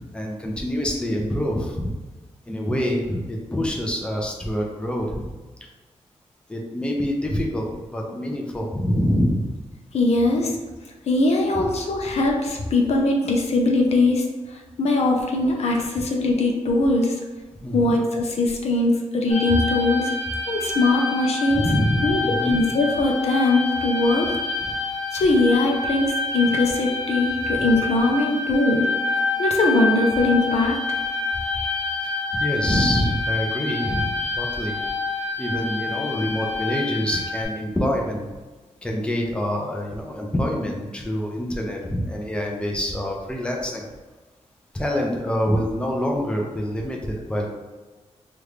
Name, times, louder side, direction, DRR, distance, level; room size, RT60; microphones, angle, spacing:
voice 1, 0.1-1.9 2.5-5.3 6.5-9.5 11.6-11.7 17.6-18.0 21.5-22.6 32.3-34.8 35.2-38.3 38.8-43.9 44.7-47.5, equal, 10° left, -1 dB, 0.6 m, -26 dB
voice 2, 9.9-10.6 11.1-14.3 14.8-17.2 17.7-20.1 20.5-21.7 22.0-22.2 22.5-24.3 25.1-28.9 29.4-30.8, left 2 dB, 65° left, 1 dB, 0.5 m, -21 dB
sound 1, 19.3-37.4, left 3 dB, 90° left, 0.9 m, -27 dB
3.1 x 2.4 x 3.3 m, 1.2 s
cardioid pair, 90°, 12 cm